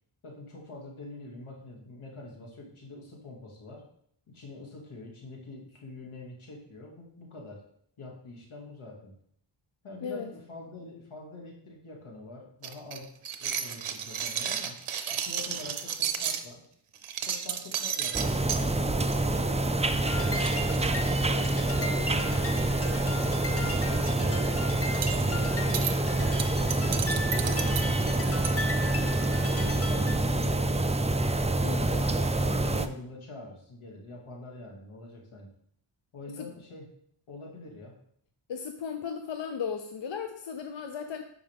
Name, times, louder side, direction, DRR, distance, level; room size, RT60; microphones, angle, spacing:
voice 1, 0.2-3.8 4.3-7.6 8.0-9.2 9.8-13.1 13.4-14.8 15.1-16.6 17.3-21.1 21.7-26.1 26.6-29.0 29.4-30.7 31.9-35.5 36.1-36.9 37.3-37.9, left 2 dB, 85° left, -2 dB, 2.3 m, -45 dB
sound 1, 12.6-16.5 17.0-18.6 19.1-19.4 19.6-19.8 20.1-20.2 20.3-21.7 22.5-22.8 23.1-23.3 23.7-24.1 25.0-25.2 25.7-25.9 26.4-28.6, right 8 dB, 85° right, 0.8 m, -33 dB
sound 2, 18.1-32.9, right 2 dB, 15° right, 0.4 m, -27 dB
sound 3, 19.9-30.2, left 2 dB, 30° left, 0.8 m, -38 dB
voice 2, 31.6-31.9 36.4-36.5 38.5-41.3, left 6 dB, 65° left, 6 dB, 0.7 m, -36 dB
11.0 x 4.9 x 3.5 m, 0.67 s
wide cardioid pair, 100°, 48 cm